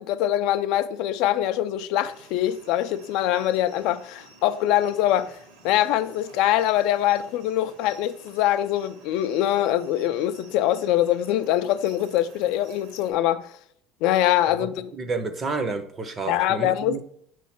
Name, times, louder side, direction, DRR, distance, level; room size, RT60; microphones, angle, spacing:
voice 1, 0.0-5.4 5.6-13.5 14.0-14.9 16.3-17.0, left 12 dB, 60° left, 0.3 m, -23 dB
sound 1, 2.0-13.1, right 3 dB, 80° right, 1.6 m, -52 dB
voice 2, 14.9-17.0, right 4 dB, 20° right, 0.5 m, -30 dB
6.4 x 3.1 x 5.6 m
cardioid pair, 175°, 0 cm